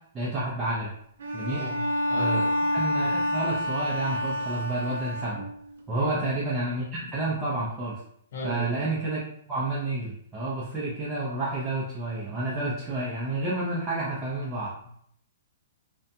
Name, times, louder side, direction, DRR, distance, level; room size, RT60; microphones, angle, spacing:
voice 1, 0.1-0.9 1.3-1.7 2.1-5.5 5.9-8.0 8.4-9.2 9.5-14.7, right 2 dB, 15° right, -8 dB, 0.5 m, -30 dB
Bowed string instrument, 1.2-5.8, left 1 dB, 70° right, 0.4 m, -28 dB
voice 2, 1.5-2.5 5.9-6.3 8.3-8.7, left 2 dB, 55° left, -1 dB, 0.9 m, -35 dB
2.5 x 2.2 x 2.7 m, 0.67 s
hypercardioid pair, 165°, 0 cm